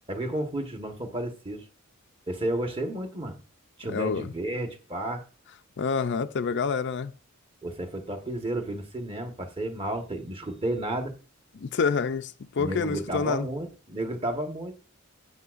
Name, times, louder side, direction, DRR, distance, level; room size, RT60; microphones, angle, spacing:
voice 1, 0.1-1.6 2.3-3.4 3.8-5.2 7.6-11.1 12.6-14.7, right 1 dB, 25° right, 1.3 m, -32 dB
voice 2, 3.9-4.3 5.8-7.1 11.6-13.5, left 5 dB, 55° left, 0.5 m, -27 dB
12.5 x 8.6 x 2.5 m
head